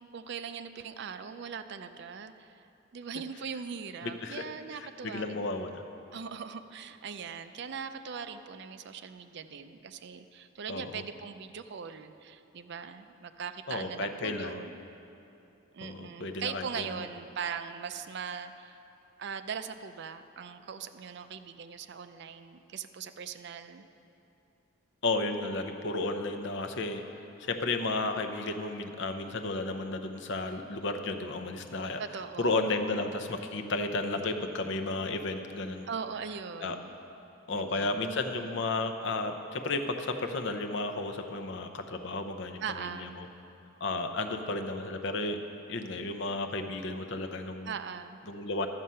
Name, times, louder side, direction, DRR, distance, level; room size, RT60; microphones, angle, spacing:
voice 1, 0.0-2.7 2.9-5.7 6.1-14.8 15.7-18.8 19.2-23.9 32.0-32.7 35.9-37.0 37.5-38.0 42.6-43.1 47.6-48.2, right 6 dB, 55° right, 10 dB, 0.4 m, -40 dB
voice 2, 4.0-4.4 4.8-5.8 10.7-11.0 13.7-14.6 15.8-16.9 25.0-27.0 27.4-32.0 32.4-35.9 36.6-36.8 37.5-43.3 43.8-45.4 45.7-47.7 48.3-48.7, left 2 dB, 60° left, 6 dB, 0.7 m, -33 dB
12.5 x 7.5 x 5.5 m, 2.8 s
head